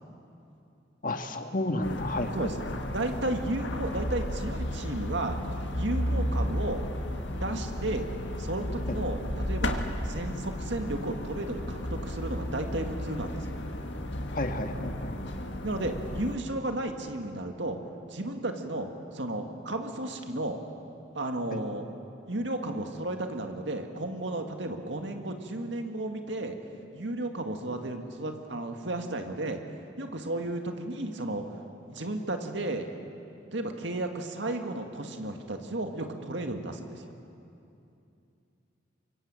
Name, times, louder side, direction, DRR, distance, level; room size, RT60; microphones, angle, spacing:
voice 1, 1.0-2.7 8.9-9.0 14.3-15.4 21.5-21.6, left 1 dB, 45° left, 5 dB, 1.7 m, -32 dB
sound 1, 1.8-16.4, left 1 dB, 70° left, 1.9 m, -33 dB
voice 2, 2.9-5.4 5.7-6.8 7.4-8.1 8.4-9.2 9.5-13.5 15.6-17.8 18.1-20.6 21.1-21.9 22.3-26.6 26.9-29.6 30.0-31.4 31.9-32.9 33.5-37.0, right 2 dB, 75° right, 5 dB, 2.0 m, -33 dB
24.0 x 23.5 x 8.9 m, 2.7 s
head